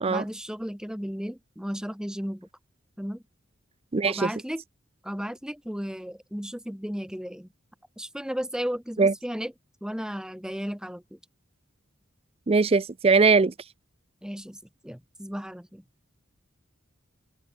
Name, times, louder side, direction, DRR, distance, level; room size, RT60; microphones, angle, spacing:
voice 1, 0.1-2.5 3.0-3.2 4.0-4.6 5.0-7.5 8.0-9.5 9.8-11.2 14.2-14.6 14.8-15.8, equal, 5° right, 1.5 m, -34 dB
voice 2, 3.9-4.3 9.0-9.1 12.5-13.5, right 4 dB, 30° right, 0.5 m, -20 dB
open air
head